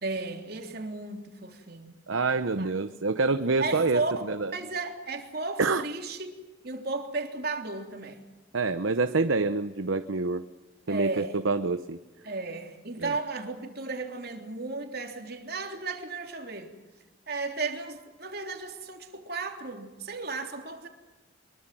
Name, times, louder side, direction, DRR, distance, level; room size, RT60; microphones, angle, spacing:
voice 1, 0.0-2.0 2.5-2.8 3.6-4.1 4.5-6.3 6.6-8.2 10.9-11.4 12.2-16.7 17.3-20.9, right 3 dB, 50° right, 4 dB, 3.4 m, -34 dB
voice 2, 2.1-4.0 4.3-4.5 5.6-5.8 8.5-10.4 10.9-12.0 13.0-13.2, right 3 dB, 80° right, 10 dB, 0.9 m, -27 dB
24.5 x 23.0 x 7.7 m, 1.2 s
head